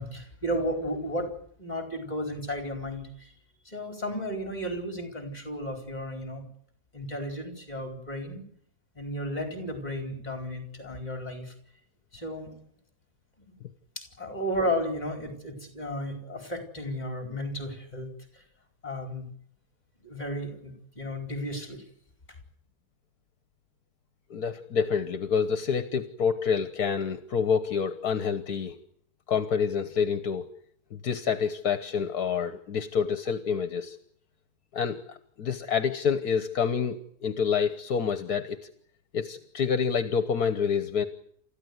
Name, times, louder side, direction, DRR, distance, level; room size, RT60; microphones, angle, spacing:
voice 1, 0.0-3.3 3.6-6.5 6.9-8.4 8.9-11.5 12.1-12.5 13.5-13.6 14.0-18.1 18.3-18.4 18.8-19.3 20.0-21.8, equal, 25° left, 4 dB, 4.7 m, -34 dB
voice 2, 24.3-28.8 29.3-30.5 30.9-34.0 34.7-38.6 39.1-41.1, left 6 dB, 70° left, 10 dB, 1.6 m, -27 dB
29.5 x 14.5 x 9.6 m, 0.69 s
omnidirectional pair, 1.7 m